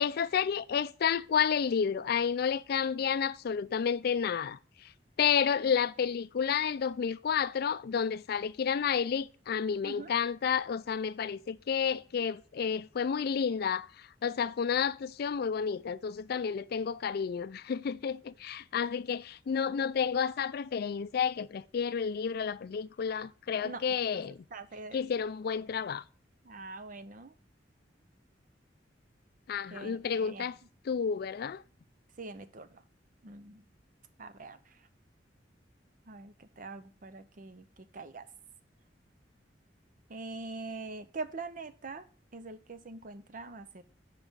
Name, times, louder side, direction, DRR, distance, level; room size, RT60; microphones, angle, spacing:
voice 1, 0.0-4.6 5.2-13.9 14.2-24.4 24.9-26.0 29.5-30.5 30.9-31.6, left 7 dB, 60° left, 0.4 m, -30 dB
voice 2, 24.1-25.0 26.4-27.3 29.7-30.5 32.2-32.8 33.2-33.7 34.2-34.9 36.1-38.3 40.1-42.1 42.3-43.8, right 3 dB, 50° right, 0.7 m, -44 dB
7.1 x 4.9 x 5.5 m
head